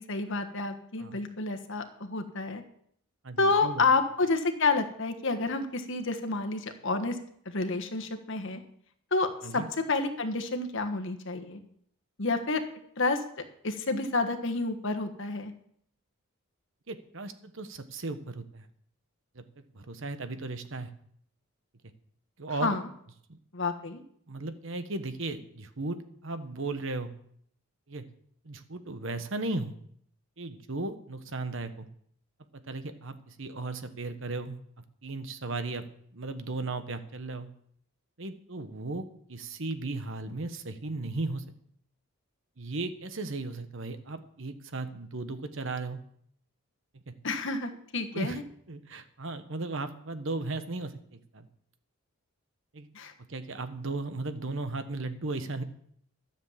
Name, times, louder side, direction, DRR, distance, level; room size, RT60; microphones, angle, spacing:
voice 1, 0.0-2.6 3.4-7.2 7.4-8.6 9.1-9.3 9.5-11.6 12.2-12.6 13.0-13.2 13.6-15.5 22.6-22.8 23.5-24.0 47.2-48.4 52.9-53.1, left 3 dB, 60° left, 6 dB, 1.4 m, -29 dB
voice 2, 3.2-3.8 9.4-9.7 16.9-18.7 19.3-20.9 22.4-22.8 23.3-23.4 24.3-27.1 27.9-28.0 28.4-29.8 30.4-31.9 32.7-34.6 35.0-37.5 38.2-39.0 39.3-41.4 42.6-46.0 47.1-47.2 48.1-48.4 48.7-51.5 52.7-52.9 53.3-55.6, right 3 dB, 60° right, 10 dB, 1.1 m, -36 dB
13.0 x 7.3 x 7.3 m, 0.67 s
head